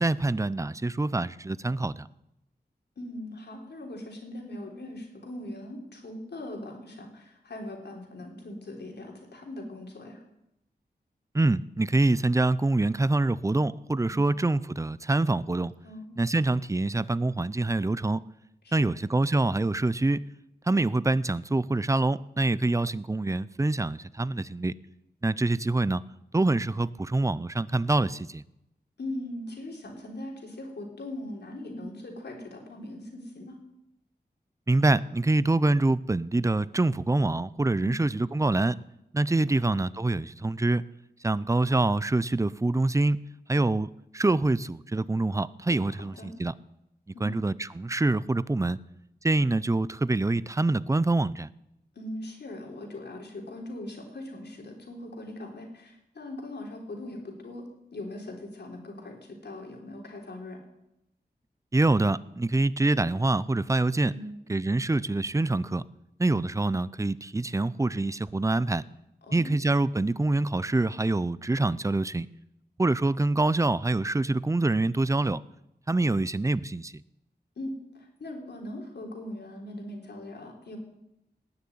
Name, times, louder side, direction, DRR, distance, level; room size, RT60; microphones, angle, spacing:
voice 1, 0.0-2.1 11.3-15.7 16.2-18.2 18.7-20.2 20.7-24.7 25.2-26.0 26.3-28.4 34.7-38.8 39.1-40.8 41.2-43.2 43.5-46.5 47.2-48.8 49.2-51.5 61.7-64.1 64.5-65.8 66.2-68.8 69.3-72.3 72.8-75.4 75.9-76.9, right 2 dB, 20° right, 18 dB, 0.5 m, -25 dB
voice 2, 3.0-10.2 14.1-14.3 15.8-16.2 18.6-18.9 29.0-33.6 37.8-38.0 39.5-39.7 45.9-46.3 47.1-47.3 52.0-57.6 57.9-60.6 64.1-64.5 69.3-69.5 77.6-80.8, left 1 dB, 80° left, 1 dB, 3.7 m, -40 dB
19.0 x 6.8 x 9.5 m, 0.87 s
wide cardioid pair, 90°, 17 cm